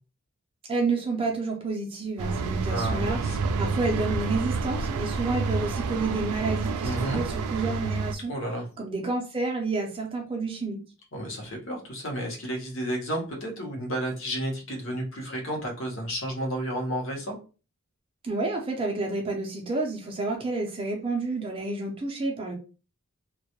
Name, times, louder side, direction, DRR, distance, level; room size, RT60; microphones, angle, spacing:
voice 1, 0.7-3.2 3.6-8.3 8.8-10.8 18.2-22.5, right 3 dB, 25° right, 1 dB, 0.4 m, -29 dB
sound 1, 2.2-8.1, right 4 dB, 90° right, 0.3 m, -29 dB
voice 2, 2.7-3.4 6.8-7.2 8.3-8.7 11.1-17.4, right 1 dB, 60° left, 0 dB, 0.8 m, -32 dB
2.2 x 2.1 x 2.8 m, 0.34 s
head